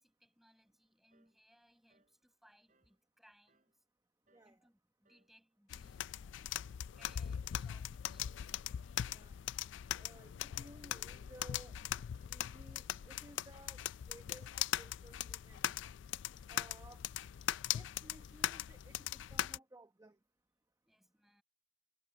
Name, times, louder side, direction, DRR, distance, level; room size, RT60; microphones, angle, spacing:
voice 1, 0.0-3.8 4.4-6.7 6.9-9.3 20.9-21.4, equal, ahead, 5.9 m, -69 dB
sound 1, 1.1-1.4 1.9-2.2 2.7-3.0 3.5-3.8 4.3-4.6 5.0-5.4 5.8-6.1 6.6-6.9 7.4-7.7 8.2-8.5 9.0-9.3 9.8-10.1 10.6-10.8 11.4-11.6 12.2-12.5 12.9-13.2, right 2 dB, 45° right, 6.9 m, -76 dB
voice 2, 4.3-4.7 9.1-9.4 10.0-11.8 12.3-15.7 16.5-17.0 17.7-20.2, right 1 dB, 20° right, 1.1 m, -58 dB
sound 2, 5.7-19.6, left 11 dB, 75° left, 0.3 m, -40 dB
head